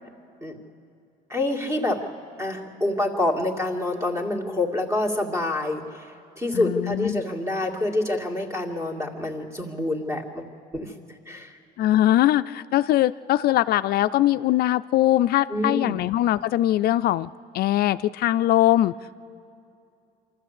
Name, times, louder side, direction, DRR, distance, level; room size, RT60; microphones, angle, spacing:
voice 1, 1.3-2.0 2.4-10.5 10.7-10.9 11.3-11.6 15.5-16.0, left 2 dB, 15° right, 3 dB, 2.3 m, -27 dB
voice 2, 6.5-7.2 11.8-18.9, left 14 dB, 65° left, 13 dB, 0.4 m, -21 dB
24.5 x 13.5 x 8.3 m, 2.5 s
cardioid pair, 110°, 17 cm